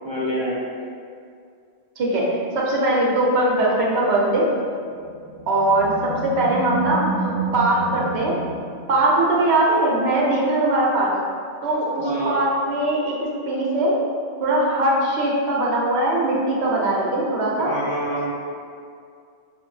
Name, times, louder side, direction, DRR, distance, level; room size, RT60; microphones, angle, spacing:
voice 1, 0.0-0.6 12.0-12.4 17.6-18.3, right 1 dB, 50° right, -6 dB, 0.3 m, -26 dB
voice 2, 2.0-4.5 5.5-8.3 8.9-11.1 11.6-14.0 14.4-17.7, right 1 dB, 70° right, -4 dB, 1.0 m, -21 dB
Animal, 4.9-9.4, right 3 dB, 60° left, 1.0 m, -30 dB
5.5 x 2.1 x 3.1 m, 2.3 s
omnidirectional pair, 1.1 m